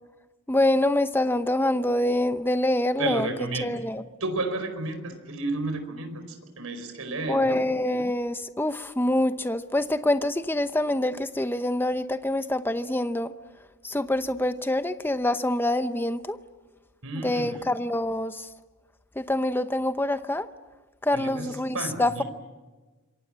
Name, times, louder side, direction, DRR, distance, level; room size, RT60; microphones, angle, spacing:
voice 1, 0.5-3.3 3.6-4.0 7.3-13.3 13.8-16.4 17.2-18.5 19.2-20.5 21.0-22.2, left 1 dB, 10° left, 11 dB, 0.8 m, -25 dB
voice 2, 3.0-3.8 4.2-7.6 17.0-17.7 21.1-22.2, right 2 dB, 75° right, 8 dB, 4.6 m, -32 dB
27.5 x 24.0 x 8.7 m, 1.3 s
head